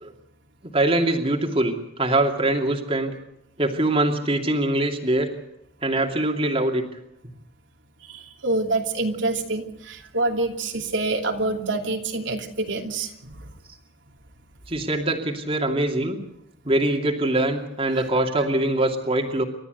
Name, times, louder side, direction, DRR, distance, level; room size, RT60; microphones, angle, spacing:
voice 1, 0.7-3.1 3.6-5.3 5.8-6.9 14.7-16.2 16.6-19.4, right 1 dB, 30° right, 2 dB, 2.7 m, -23 dB
voice 2, 8.0-13.5 17.9-18.1, right 2 dB, 70° right, 2 dB, 2.8 m, -27 dB
29.0 x 13.5 x 8.1 m, 0.84 s
head